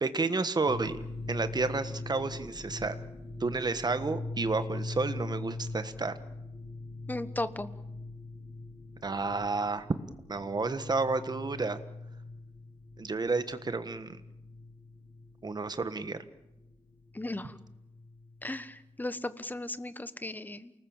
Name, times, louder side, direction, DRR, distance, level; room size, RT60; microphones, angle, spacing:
voice 1, 0.0-1.0 1.3-3.0 3.4-6.2 9.0-9.9 10.3-11.8 13.0-14.2 15.4-16.2, right 3 dB, 35° right, 11 dB, 1.4 m, -31 dB
sound 1, 0.7-18.9, left 2 dB, 50° left, 7.3 m, -42 dB
voice 2, 7.1-7.7 17.1-17.5 18.4-20.7, left 2 dB, 15° left, 13 dB, 1.2 m, -36 dB
28.5 x 19.5 x 7.3 m, 0.90 s
wide cardioid pair, 140°, 12 cm